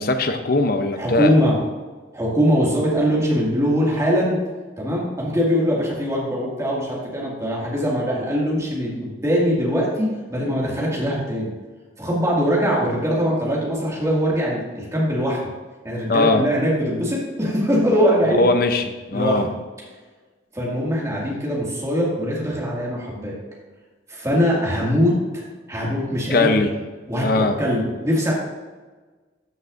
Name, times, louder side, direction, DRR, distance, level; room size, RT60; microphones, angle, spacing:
voice 1, 0.0-1.3 16.1-16.4 18.2-19.5 26.3-26.7 27.2-27.6, left 3 dB, 50° left, 7 dB, 0.7 m, -20 dB
voice 2, 1.0-1.6 2.1-4.4 4.8-11.5 12.0-15.4 15.8-18.4 19.1-19.5 20.5-23.3 24.1-25.4 25.7-26.5 27.1-28.3, equal, 15° right, -5 dB, 2.1 m, -22 dB
13.0 x 6.0 x 2.6 m, 1.3 s
head